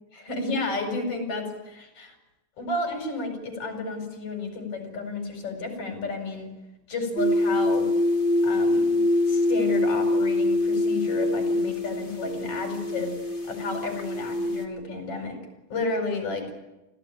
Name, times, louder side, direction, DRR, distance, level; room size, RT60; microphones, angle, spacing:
voice 1, 0.1-2.1 2.6-6.5 6.9-7.9 8.4-15.4 15.7-16.5, left 3 dB, 45° left, 4 dB, 5.9 m, -32 dB
sound 1, 7.2-14.6, left 2 dB, 20° left, 2.0 m, -24 dB
25.0 x 16.0 x 8.8 m, 1.0 s
omnidirectional pair, 3.7 m